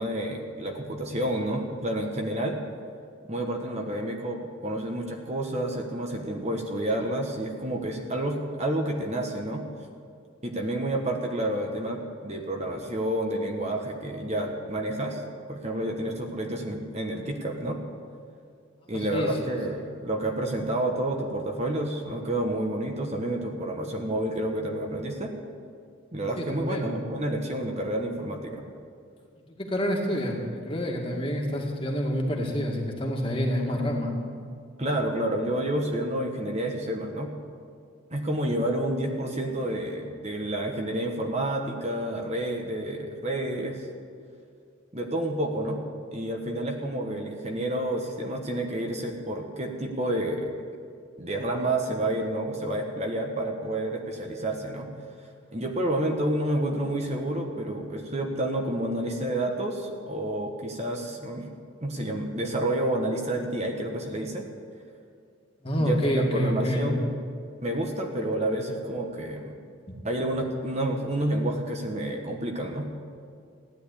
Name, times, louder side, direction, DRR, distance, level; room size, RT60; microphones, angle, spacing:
voice 1, 0.0-2.6 3.3-9.6 10.4-15.2 15.5-17.8 18.9-25.3 26.1-28.7 34.8-37.3 38.1-43.9 44.9-45.8 46.1-50.5 51.2-54.9 55.5-61.5 61.8-64.5 65.8-67.2 67.6-69.5 70.0-72.9, right 1 dB, 30° right, 2 dB, 1.3 m, -29 dB
voice 2, 19.1-19.6 26.4-26.9 29.6-34.1 65.6-66.9 69.9-70.0, equal, 25° left, 0 dB, 2.0 m, -28 dB
15.0 x 10.5 x 8.5 m, 2.3 s
head